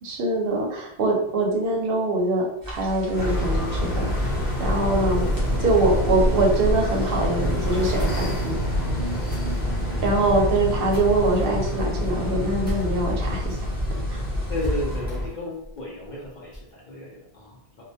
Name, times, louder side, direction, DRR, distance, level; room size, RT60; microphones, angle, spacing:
voice 1, 0.0-4.3 4.6-5.3 5.6-8.8 10.0-13.7 14.1-14.2, right 2 dB, 65° right, 0 dB, 0.7 m, -23 dB
sound 1, 2.6-15.0, left 2 dB, 25° right, 0.5 m, -36 dB
sound 2, 3.2-15.3, equal, 75° left, 0.9 m, -26 dB
sound 3, 9.3-13.4 13.7-13.8 14.1-14.2 14.6-16.7, equal, 10° left, 0.8 m, -36 dB
voice 2, 14.5-17.8, left 1 dB, 55° left, -3 dB, 0.5 m, -33 dB
2.2 x 2.1 x 2.6 m, 0.74 s
omnidirectional pair, 1.1 m